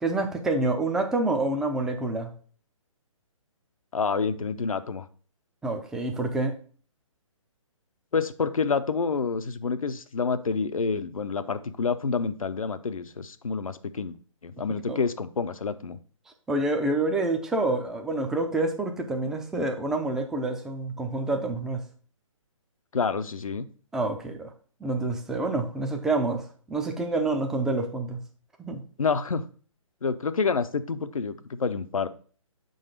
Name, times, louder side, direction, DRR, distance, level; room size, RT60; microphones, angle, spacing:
voice 1, 0.0-2.3 5.6-6.6 14.9-15.0 16.5-21.8 23.9-24.5 24.8-28.2 28.6-28.8, right 2 dB, 5° right, 4 dB, 0.4 m, -27 dB
voice 2, 3.9-5.1 8.1-14.2 14.4-16.0 22.9-23.7 29.0-29.4 30.0-32.1, left 5 dB, 90° left, 12 dB, 0.6 m, -28 dB
5.6 x 3.9 x 5.0 m, 0.43 s
hypercardioid pair, 145°, 17 cm